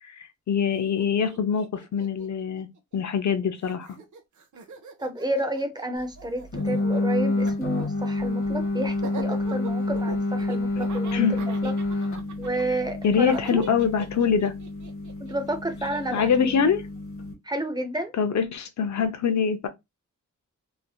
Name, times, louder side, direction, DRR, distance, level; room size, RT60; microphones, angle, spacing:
voice 1, 0.0-2.7 2.9-4.0 11.1-11.4 13.0-14.5 16.1-16.8 18.2-19.7, left 7 dB, 65° left, 0.6 m, -24 dB
Laughter, 0.7-0.8 1.0-3.3 3.6-16.6, right 4 dB, 75° right, 0.7 m, -42 dB
voice 2, 5.0-11.7 12.4-13.6 15.3-16.5 17.4-18.1, right 1 dB, 15° right, 0.5 m, -31 dB
sound 1, 6.5-17.3, left 2 dB, 45° left, 0.9 m, -28 dB
3.2 x 2.6 x 2.3 m
wide cardioid pair, 150°, 30 cm